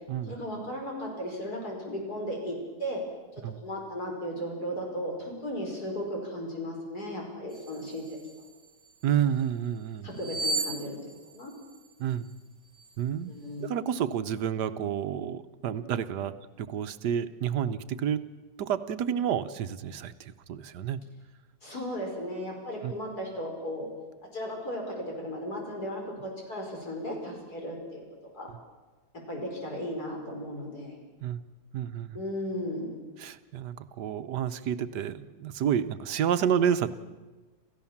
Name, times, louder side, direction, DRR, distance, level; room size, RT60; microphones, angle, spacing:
voice 1, 0.3-3.0 3.6-8.0 10.0-11.5 13.3-13.8 21.6-23.9 24.3-28.0 28.3-28.5 29.3-31.0 32.1-33.0, equal, 65° left, 0 dB, 5.6 m, -35 dB
sound 1, 7.5-9.0 10.1-12.3 12.7-12.9, right 3 dB, 35° right, 1.4 m, -36 dB
voice 2, 9.0-10.1 12.0-12.2 13.0-13.3 13.6-18.3 18.6-21.0 22.8-22.9 31.2-31.4 31.7-32.2 33.2-36.9, right 9 dB, 75° right, 11 dB, 1.5 m, -30 dB
28.0 x 15.0 x 7.3 m, 1.3 s
omnidirectional pair, 1.8 m